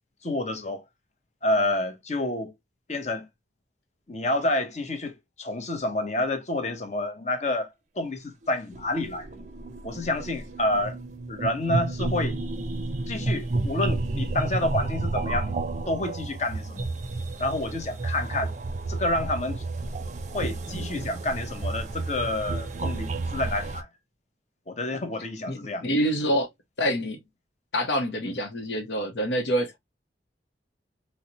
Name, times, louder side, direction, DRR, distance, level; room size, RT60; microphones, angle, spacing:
voice 1, 0.2-0.8 1.4-2.5 2.9-3.3 4.1-7.7 8.0-9.4 9.8-11.0 11.3-12.4 13.1-15.5 15.9-16.9 17.4-18.5 18.9-19.6 20.3-23.9 24.7-25.9, left 1 dB, 40° left, 0.8 m, -29 dB
sound 1, 8.4-23.8, right 2 dB, 40° right, 0.5 m, -31 dB
voice 2, 25.5-26.5 26.8-27.2 27.7-29.8, equal, 85° left, 0.8 m, -26 dB
3.9 x 2.1 x 2.8 m
head